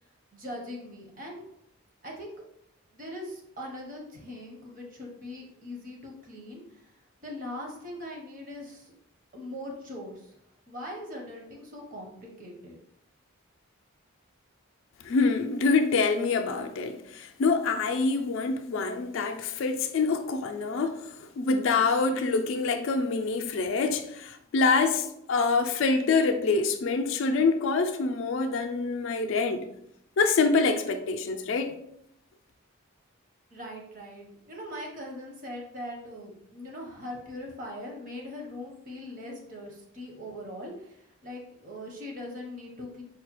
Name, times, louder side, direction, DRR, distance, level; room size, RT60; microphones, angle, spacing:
voice 1, 0.3-1.4 2.0-2.4 2.9-6.9 7.2-8.9 9.3-10.3 10.7-12.8 33.5-43.0, left 1 dB, 40° right, 0.8 m, -41 dB
voice 2, 15.0-29.7 30.2-31.7, left 4 dB, 65° left, 0.3 m, -26 dB
4.8 x 2.3 x 2.9 m
head